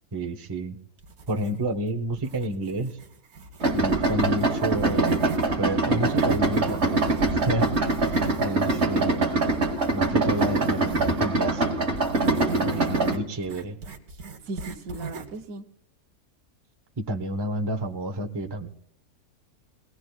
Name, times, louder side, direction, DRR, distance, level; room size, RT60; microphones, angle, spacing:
voice 1, 0.1-0.8 1.3-3.0 3.7-5.2 5.6-7.1 7.5-7.9 8.4-9.2 9.9-11.8 12.3-13.8 17.0-18.7, right 1 dB, 25° right, 4 dB, 0.6 m, -30 dB
sound 1, 1.0-1.8 2.2-5.5 5.9-11.2 12.0-15.4, right 4 dB, 85° right, 1.8 m, -41 dB
Idling, 3.6-13.2, right 2 dB, 50° right, 1.6 m, -24 dB
voice 2, 8.5-8.9 12.4-13.2 14.4-15.7, right 3 dB, 70° right, 7 dB, 1.2 m, -36 dB
22.5 x 18.0 x 2.3 m, 0.67 s
omnidirectional pair, 1.6 m